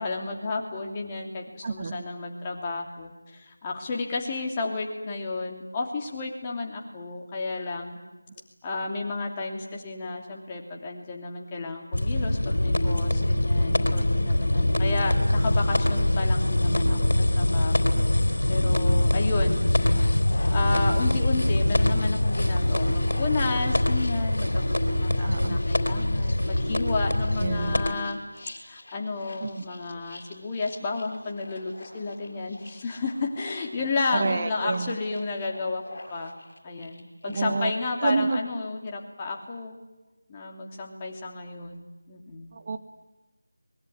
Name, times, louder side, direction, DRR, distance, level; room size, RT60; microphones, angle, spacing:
voice 1, 0.0-8.0 8.6-18.0 18.5-19.6 20.0-20.2 20.5-28.2 28.6-36.3 36.6-39.8 40.3-42.5, left 3 dB, 20° left, 0 dB, 2.9 m, -32 dB
voice 2, 1.6-2.0 25.2-25.6 27.4-27.8 29.4-29.6 34.1-35.0 37.2-37.7 38.0-38.4 42.5-42.8, right 4 dB, 30° right, 9 dB, 1.2 m, -28 dB
sound 1, 11.9-27.9, left 1 dB, 75° left, 3.8 m, -23 dB
sound 2, 19.7-37.4, left 1 dB, 50° left, 6.2 m, -47 dB
23.5 x 22.0 x 9.7 m, 1.1 s
figure-of-eight pair, 170°, 0 cm